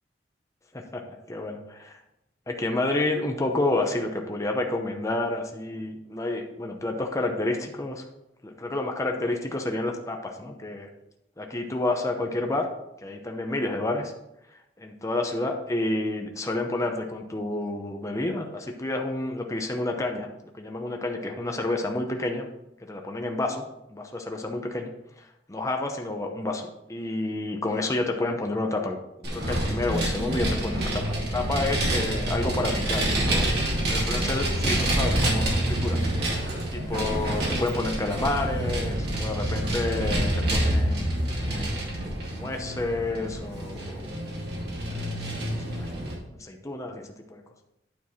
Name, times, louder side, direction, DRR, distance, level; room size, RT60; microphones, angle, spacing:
voice 1, 1.3-2.0 2.5-8.0 8.4-10.9 11.4-12.7 13.0-14.1 14.8-20.3 20.5-22.5 22.8-23.6 23.9-24.9 25.2-26.6 26.9-33.5 33.9-36.1 36.7-41.8 42.3-44.1 44.8-45.1 45.8-45.9 46.4-47.4, left 2 dB, 20° left, 3 dB, 0.7 m, -29 dB
Vehicle, 29.2-46.1, right 1 dB, 65° right, 2.3 m, -27 dB
9.4 x 4.6 x 4.2 m, 0.85 s
head